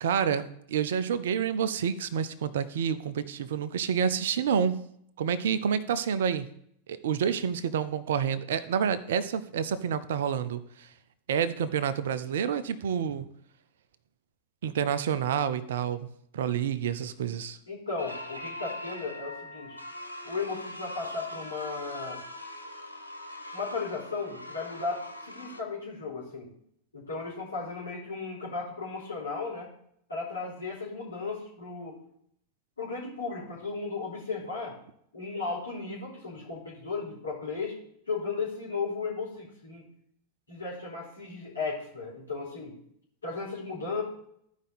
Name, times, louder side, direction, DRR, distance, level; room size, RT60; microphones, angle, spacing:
voice 1, 0.0-4.8 5.2-6.5 6.9-10.9 11.3-13.3 14.6-16.1 16.3-17.6, right 8 dB, 60° right, 15 dB, 0.6 m, -28 dB
voice 2, 17.7-19.8 20.2-22.2 23.5-26.5 26.9-29.7 30.1-32.0 32.8-34.8 35.1-37.8 38.1-39.8 40.5-42.7 43.2-44.0, left 4 dB, 80° left, -5 dB, 4.3 m, -35 dB
sound 1, 18.0-25.6, left 1 dB, 90° right, 1.2 m, -41 dB
14.0 x 5.2 x 4.1 m, 0.70 s
figure-of-eight pair, 90°, 0 cm